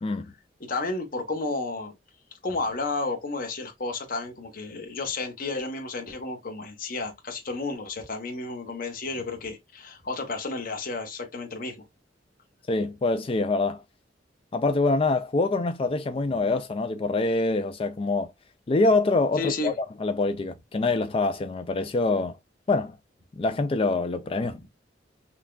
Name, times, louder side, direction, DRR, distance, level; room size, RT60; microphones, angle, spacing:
voice 1, 0.0-0.3 12.7-13.8 14.5-18.3 18.7-19.7 20.0-22.4 22.7-23.0 23.4-24.6, left 3 dB, 30° left, 0.4 m, -25 dB
voice 2, 0.6-1.9 2.4-11.8 19.4-19.7 24.4-24.6, left 3 dB, 50° left, 1.1 m, -32 dB
5.8 x 2.3 x 2.3 m
head